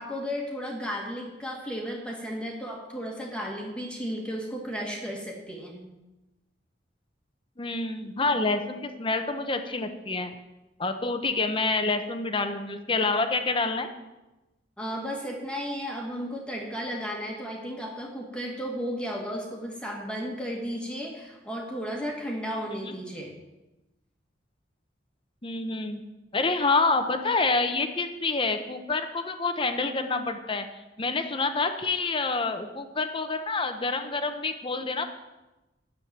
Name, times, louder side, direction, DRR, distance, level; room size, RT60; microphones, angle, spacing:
voice 1, 0.0-5.9 14.8-23.4, equal, 5° left, -1 dB, 1.7 m, -34 dB
voice 2, 7.6-10.3 10.8-13.9 22.8-22.9 25.4-26.0 26.3-30.6 31.0-35.0, left 3 dB, 30° left, 7 dB, 0.9 m, -27 dB
10.5 x 7.5 x 7.5 m, 1.0 s
head